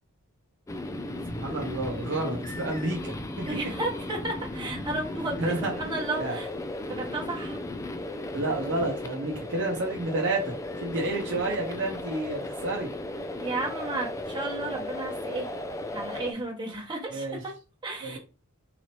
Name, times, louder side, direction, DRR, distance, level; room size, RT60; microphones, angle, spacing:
sound 1, 0.7-16.3, left 1 dB, 15° left, 0.3 m, -36 dB
voice 1, 1.3-3.1 3.6-3.7 5.4-5.7 6.2-6.4 8.3-12.9 17.1-17.4 18.0-18.2, right 2 dB, 60° right, 0 dB, 0.8 m, -30 dB
voice 2, 3.4-6.5 6.9-7.6 13.4-15.5 15.9-17.5 17.8-18.2, right 2 dB, 20° right, -2 dB, 1.2 m, -33 dB
3.9 x 3.0 x 3.0 m, 0.32 s
head